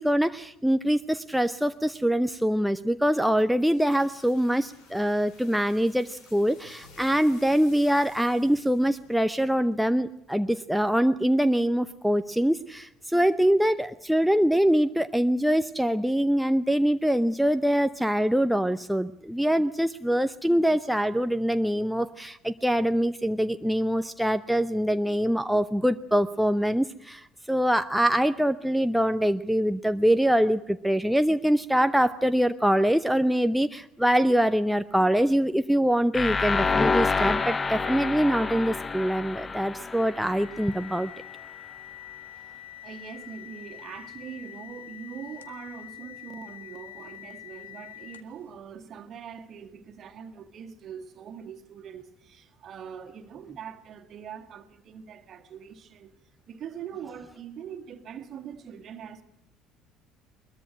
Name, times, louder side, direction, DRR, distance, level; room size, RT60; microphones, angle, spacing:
voice 1, 0.0-41.1, equal, ahead, 0.7 m, -24 dB
sound 1, 3.4-10.0, left 3 dB, 60° left, 4.7 m, -54 dB
sound 2, 36.1-41.0, left 4 dB, 25° left, 1.0 m, -28 dB
sound 3, 39.9-48.5, left 14 dB, 75° left, 1.1 m, -45 dB
voice 2, 42.4-56.1 56.5-59.2, right 7 dB, 45° right, 2.0 m, -42 dB
21.5 x 21.0 x 6.3 m
figure-of-eight pair, 55°, 0 cm